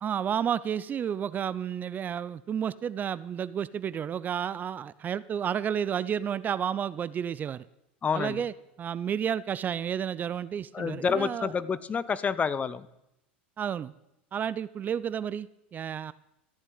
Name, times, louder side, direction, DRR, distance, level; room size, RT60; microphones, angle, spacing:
voice 1, 0.0-7.7 8.1-11.5 13.6-13.9 14.3-16.1, right 8 dB, 30° right, 17 dB, 0.5 m, -31 dB
voice 2, 8.0-8.4 10.7-12.8, left 6 dB, 25° left, 17 dB, 0.9 m, -28 dB
14.5 x 9.8 x 9.3 m, 0.85 s
hypercardioid pair, 90°, 6 cm